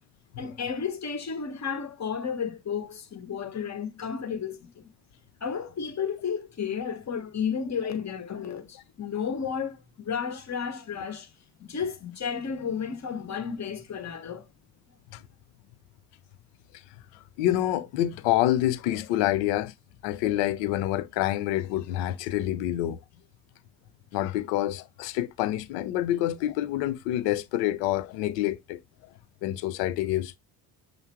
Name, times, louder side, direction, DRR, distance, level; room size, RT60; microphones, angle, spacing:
voice 1, 0.4-4.9 5.4-11.3 11.6-14.5, left 6 dB, 40° left, 1.4 m, -32 dB
voice 2, 17.4-19.7 20.0-23.0 24.1-28.8 29.4-30.4, left 14 dB, 80° left, 0.7 m, -27 dB
5.5 x 2.0 x 4.5 m
hypercardioid pair, 60°, 42 cm